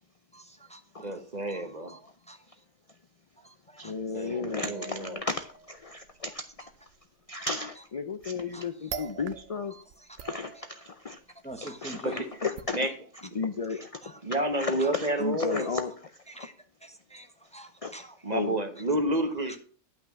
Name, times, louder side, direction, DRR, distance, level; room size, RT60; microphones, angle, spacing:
voice 1, 0.3-1.1 1.5-2.0 2.3-2.4 3.4-3.9 4.2-4.3 8.5-8.6 9.7-10.1 11.4-12.2 13.7-14.2 14.8-14.9 15.6-15.7 16.3-16.5 16.8-18.2 19.5-19.6, right 1 dB, 5° left, 6 dB, 1.0 m, -46 dB
voice 2, 1.0-2.0 4.1-5.2 12.0-12.3 12.7-12.9 14.2-15.7 18.2-19.6, right 1 dB, 30° right, 7 dB, 1.3 m, -30 dB
voice 3, 3.8-6.4 7.3-9.7 10.2-11.2 11.6-12.8 13.4-14.0 14.6-15.9 16.4-16.5 17.8-18.0 18.3-18.5, left 4 dB, 45° left, 9 dB, 0.5 m, -33 dB
sound 1, 4.6-7.0 8.2-8.5 8.9-9.6 9.9-11.1 11.5-11.6 12.6-12.7, right 8 dB, 65° right, 1.0 m, -43 dB
10.5 x 6.0 x 5.9 m, 0.41 s
omnidirectional pair, 1.4 m